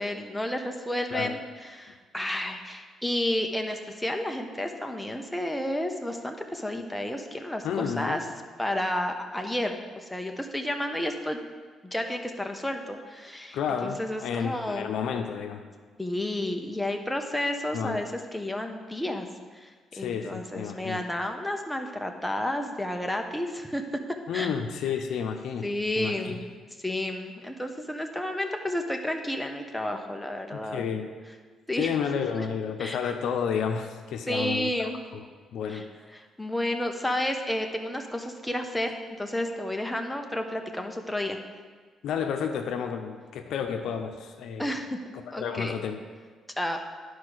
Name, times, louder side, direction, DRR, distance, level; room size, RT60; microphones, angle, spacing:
voice 1, 0.0-8.2 8.6-9.8 10.1-11.4 11.8-13.6 13.8-14.9 16.0-19.3 19.5-23.8 24.3-24.5 25.6-26.4 26.8-30.9 31.7-31.9 32.3-32.4 32.8-33.1 34.3-35.0 35.7-35.8 36.1-38.9 39.2-41.4 44.6-45.0 45.3-45.7 46.6-46.8, left 1 dB, 5° left, 3 dB, 0.9 m, -31 dB
voice 2, 7.6-8.2 13.5-15.7 17.7-18.0 19.9-21.0 24.3-25.7 26.0-26.4 30.6-31.1 31.8-35.3 35.5-35.9 42.0-44.8 45.4-46.0, left 7 dB, 80° left, 5 dB, 0.7 m, -31 dB
10.5 x 4.8 x 6.3 m, 1.5 s
cardioid pair, 90°, 0 cm